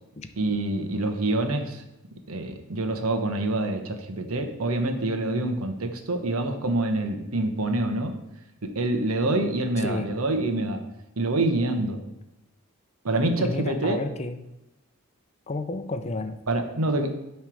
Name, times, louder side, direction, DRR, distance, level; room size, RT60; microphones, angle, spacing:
voice 1, 0.4-1.8 2.3-8.1 8.6-10.8 11.2-12.0 13.0-14.0 16.5-17.1, right 2 dB, 80° right, 6 dB, 1.0 m, -26 dB
voice 2, 9.8-10.1 13.4-14.4 15.5-16.4, left 2 dB, 30° left, 9 dB, 0.5 m, -31 dB
8.9 x 3.3 x 6.2 m, 0.95 s
head